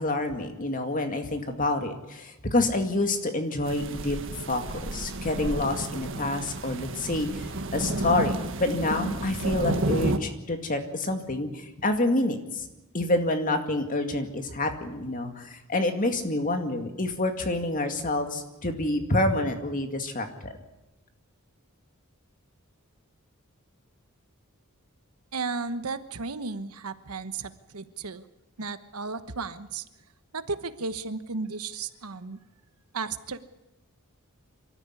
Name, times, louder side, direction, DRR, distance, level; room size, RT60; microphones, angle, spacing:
voice 1, 0.0-4.2 4.5-7.5 7.7-11.5 11.8-12.6 12.9-20.5, left 2 dB, 40° left, 6 dB, 2.2 m, -27 dB
sound 1, 3.6-10.2, right 2 dB, 60° right, 1.6 m, -31 dB
voice 2, 25.3-28.2 28.6-29.8 30.3-32.4 32.9-33.4, right 4 dB, 90° right, 12 dB, 1.2 m, -34 dB
25.0 x 13.5 x 9.8 m, 0.96 s
head